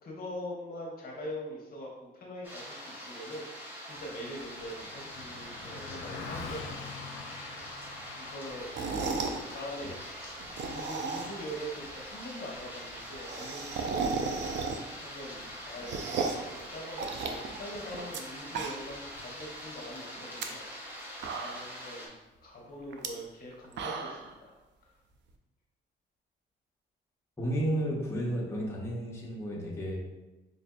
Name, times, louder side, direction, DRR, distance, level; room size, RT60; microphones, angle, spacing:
voice 1, 0.0-6.6 8.2-8.7 9.2-20.6 20.9-22.1 22.4-24.6, equal, 50° left, -2 dB, 0.9 m, -43 dB
sound 1, 2.4-22.1, equal, 10° right, 1.0 m, -44 dB
Car passing by, 3.9-13.5, left 4 dB, 85° left, 0.5 m, -46 dB
sound 2, 8.6-9.4 10.4-11.5 11.8-11.9 12.2-12.3 12.5-12.6 12.8-15.0 15.4-16.5 17.0-18.2 18.5-19.1 19.4-19.5 20.2-20.5 20.9-21.0 21.2-21.8 22.9-23.1 23.5-24.3, right 4 dB, 65° right, 0.5 m, -34 dB
voice 2, 27.4-30.0, right 1 dB, 15° left, -4 dB, 0.9 m, -32 dB
5.2 x 2.5 x 2.2 m, 1.1 s
cardioid pair, 90°, 20 cm